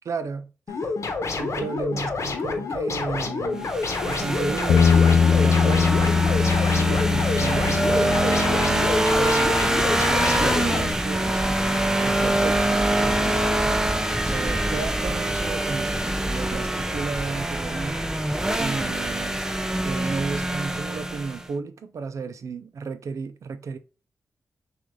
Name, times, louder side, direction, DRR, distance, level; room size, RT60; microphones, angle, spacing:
voice 1, 0.1-0.8 1.3-3.7 4.0-6.2 6.7-11.4 12.0-13.4 14.2-19.4 19.8-23.8, right 5 dB, 70° right, 0.5 m, -33 dB
sound 1, 0.7-10.8, left 3 dB, 60° left, 1.0 m, -28 dB
sound 2, 3.6-21.5, right 1 dB, 10° right, 0.5 m, -24 dB
Bass guitar, 4.7-10.9, left 6 dB, 85° left, 0.4 m, -22 dB
6.2 x 2.5 x 3.1 m
wide cardioid pair, 95°, 6 cm